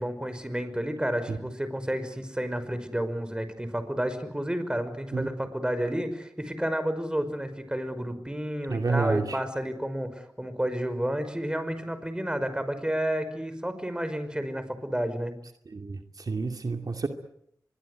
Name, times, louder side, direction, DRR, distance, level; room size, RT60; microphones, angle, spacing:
voice 1, 0.0-15.3, equal, 15° right, 11 dB, 5.3 m, -31 dB
voice 2, 8.7-9.4 15.7-17.1, right 4 dB, 65° right, 5 dB, 2.5 m, -29 dB
25.5 x 23.0 x 8.2 m, 0.72 s
cardioid pair, 45°, 7 cm